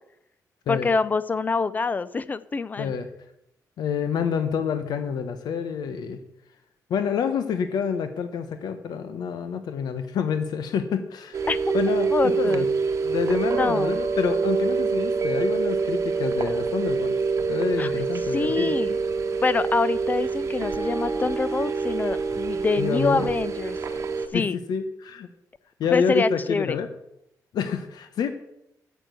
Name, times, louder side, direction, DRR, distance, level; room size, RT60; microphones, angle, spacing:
voice 1, 0.7-2.9 11.5-11.6 12.1-12.7 13.5-14.0 17.8-17.9 18.3-19.0 19.4-23.8 24.3-24.6 25.9-26.8, left 4 dB, 25° left, 17 dB, 0.5 m, -25 dB
voice 2, 2.8-3.1 3.8-6.2 6.9-11.5 11.7-12.7 13.0-17.2 17.5-18.8 22.8-23.3 24.3-25.3 25.8-26.9 27.5-28.3, left 6 dB, 85° left, 9 dB, 1.0 m, -27 dB
sound 1, 11.3-24.3, right 4 dB, 50° right, 1.1 m, -26 dB
9.1 x 7.0 x 8.2 m, 0.80 s
wide cardioid pair, 155°, 7 cm